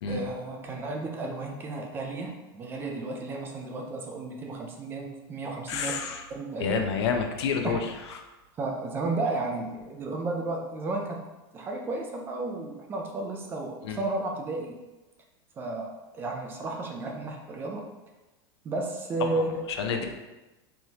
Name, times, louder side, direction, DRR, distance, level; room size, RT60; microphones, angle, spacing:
voice 1, 0.1-6.0 6.3-6.8 7.6-7.8 8.6-11.2 11.5-14.7 15.6-17.9 18.6-19.6, right 2 dB, 15° right, 1 dB, 0.4 m, -33 dB
voice 2, 5.7-6.2 6.6-7.8 8.1-8.2 13.8-14.0 19.2-20.0, left 6 dB, 90° left, 5 dB, 0.6 m, -29 dB
4.3 x 3.2 x 2.8 m, 1.1 s
supercardioid pair, 165°, 13 cm